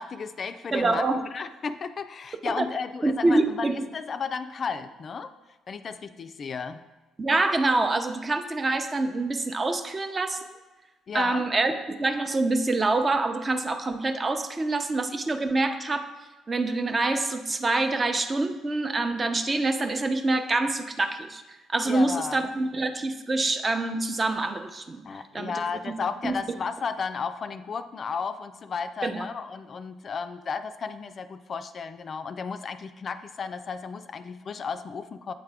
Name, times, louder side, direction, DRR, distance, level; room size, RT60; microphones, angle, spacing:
voice 1, 0.0-1.0 1.3-5.3 5.7-6.8 11.1-11.4 21.9-22.4 25.1-35.3, left 5 dB, 50° left, 10 dB, 0.3 m, -33 dB
voice 2, 0.7-1.2 2.5-2.7 3.0-3.9 7.2-10.4 11.1-11.7 12.0-16.1 16.5-21.4 21.7-25.0 25.3-25.5 25.9-26.0 26.2-26.4 29.0-29.3, right 2 dB, 30° right, 7 dB, 0.6 m, -26 dB
8.2 x 3.5 x 3.4 m, 1.2 s
supercardioid pair, 65°, 0 cm